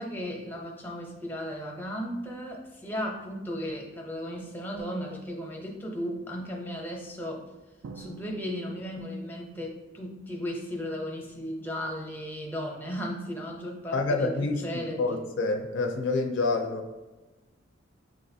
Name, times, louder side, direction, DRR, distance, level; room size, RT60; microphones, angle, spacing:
voice 1, 0.0-7.4 8.0-14.3 14.6-15.2, equal, 10° left, 0 dB, 0.6 m, -35 dB
Drum, 7.8-9.5, right 5 dB, 70° right, 0.4 m, -47 dB
voice 2, 13.9-14.6 15.0-16.9, left 3 dB, 65° left, 4 dB, 0.4 m, -27 dB
6.4 x 2.4 x 2.6 m, 1.1 s
head